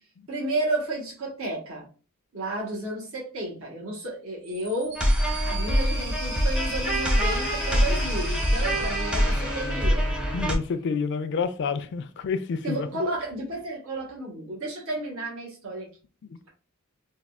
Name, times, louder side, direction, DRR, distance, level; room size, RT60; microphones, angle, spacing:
voice 1, 0.3-1.9 2.3-5.0 5.4-10.1 12.6-15.9, right 1 dB, 70° right, 1.1 m, -32 dB
sound 1, 4.4-10.7, equal, 50° right, 1.5 m, -37 dB
sound 2, 5.0-10.6, equal, 5° right, 0.4 m, -24 dB
voice 2, 10.3-12.9 15.7-15.8 16.3-16.5, left 5 dB, 55° left, 0.3 m, -29 dB
3.5 x 2.3 x 2.2 m
head